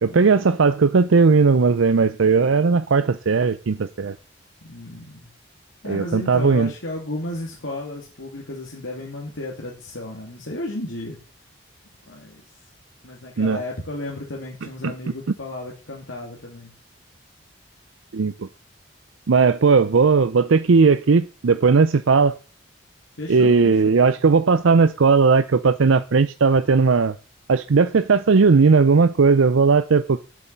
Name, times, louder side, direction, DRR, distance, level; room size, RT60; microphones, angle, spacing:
voice 1, 0.0-4.1 5.9-6.7 13.4-13.6 14.8-14.9 18.1-18.5 19.3-22.3 23.3-27.1 27.5-30.2, right 4 dB, 80° right, 0.5 m, -17 dB
voice 2, 4.6-5.3 5.8-11.2 12.1-12.4 13.0-16.7 23.2-24.2, left 1 dB, 75° left, 2.5 m, -33 dB
8.4 x 7.3 x 8.1 m
head